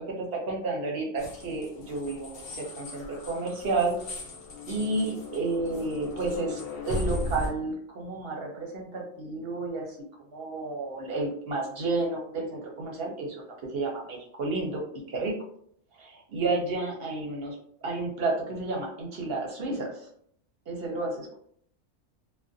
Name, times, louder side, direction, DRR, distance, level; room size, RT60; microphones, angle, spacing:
voice 1, 0.1-3.9 4.7-6.6 6.9-10.0 10.3-15.3 15.9-17.6 17.8-20.1 20.7-21.4, right 3 dB, 60° right, 0 dB, 0.7 m, -31 dB
sound 1, 1.2-7.5, left 1 dB, 60° left, 0.9 m, -37 dB
2.4 x 2.1 x 2.5 m, 0.64 s
omnidirectional pair, 1.4 m